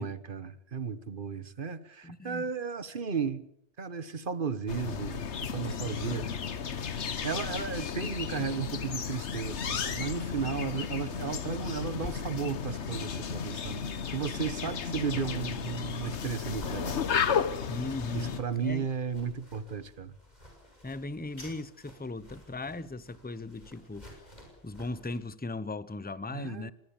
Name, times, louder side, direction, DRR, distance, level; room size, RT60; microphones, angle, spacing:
voice 1, 0.0-3.5 3.8-6.3 7.2-13.8 14.1-17.0 18.1-20.2 26.3-26.7, right 6 dB, 50° right, 1.3 m, -34 dB
voice 2, 2.0-2.5 17.7-18.9 20.8-24.2 24.6-26.7, left 2 dB, 10° left, 0.7 m, -38 dB
sound 1, 4.7-18.4, left 7 dB, 90° left, 1.4 m, -34 dB
sound 2, 8.3-25.2, left 1 dB, 40° left, 6.4 m, -52 dB
sound 3, 20.9-21.9, left 1 dB, 75° left, 8.1 m, -52 dB
25.0 x 20.5 x 7.1 m
omnidirectional pair, 1.1 m